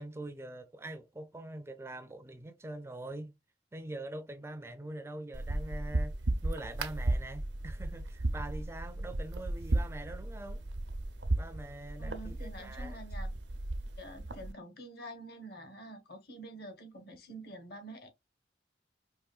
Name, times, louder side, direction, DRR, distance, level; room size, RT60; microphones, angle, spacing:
voice 1, 0.0-3.3 3.7-6.2 6.4-10.7 11.4-13.0, right 1 dB, 15° right, 0.4 m, -44 dB
sound 1, 5.3-14.5, right 2 dB, 85° right, 0.7 m, -35 dB
voice 2, 12.0-13.3 14.0-18.1, right 1 dB, 60° left, 1.2 m, -47 dB
4.7 x 2.9 x 2.3 m
head